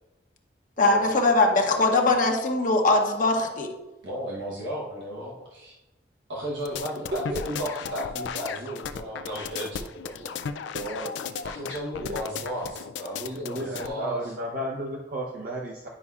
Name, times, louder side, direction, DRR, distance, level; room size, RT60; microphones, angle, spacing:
voice 1, 0.8-3.7, left 2 dB, 45° left, 2 dB, 0.8 m, -21 dB
voice 2, 4.0-5.7 6.3-10.8 11.4-14.3, equal, 80° right, -4 dB, 1.1 m, -35 dB
sound 1, 6.7-13.9, left 6 dB, 80° left, 0.4 m, -35 dB
voice 3, 7.1-7.4 10.7-11.1 12.0-12.2 13.4-15.9, right 1 dB, 55° right, -2 dB, 0.7 m, -33 dB
9.8 x 5.4 x 2.4 m, 1.0 s
head